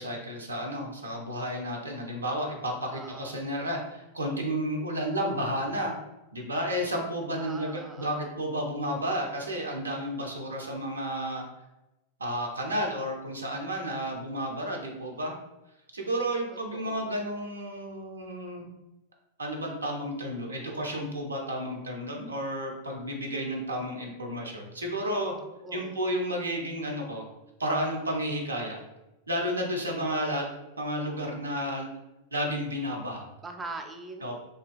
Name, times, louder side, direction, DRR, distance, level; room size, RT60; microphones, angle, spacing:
voice 1, 0.0-6.0 6.3-11.4 12.2-15.4 15.9-18.7 19.4-25.3 25.7-27.3 27.6-28.8 29.3-30.5 30.8-31.9 32.3-33.3 34.2-34.4, equal, 80° right, 1 dB, 0.4 m, -32 dB
voice 2, 2.9-3.4 7.4-8.3 14.5-15.3 16.7-17.2 25.4-26.1 33.4-34.4, right 3 dB, 15° right, 4 dB, 0.3 m, -43 dB
2.4 x 2.2 x 2.4 m, 0.97 s
figure-of-eight pair, 90°, 0 cm